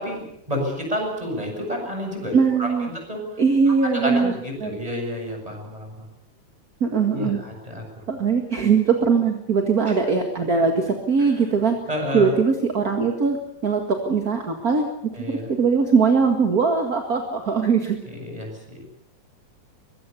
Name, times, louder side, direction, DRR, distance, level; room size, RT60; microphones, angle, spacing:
voice 1, 0.0-2.3 2.6-3.2 3.7-6.1 7.1-8.0 9.9-10.0 11.2-11.3 11.9-12.3 15.1-15.5 18.0-18.8, left 1 dB, 10° right, 2 dB, 7.9 m, -30 dB
voice 2, 2.3-2.9 3.4-4.3 4.6-4.7 6.8-7.4 8.1-11.8 12.1-14.9 15.2-18.0, right 5 dB, 35° right, 4 dB, 1.9 m, -21 dB
24.0 x 22.0 x 7.1 m, 0.78 s
omnidirectional pair, 3.6 m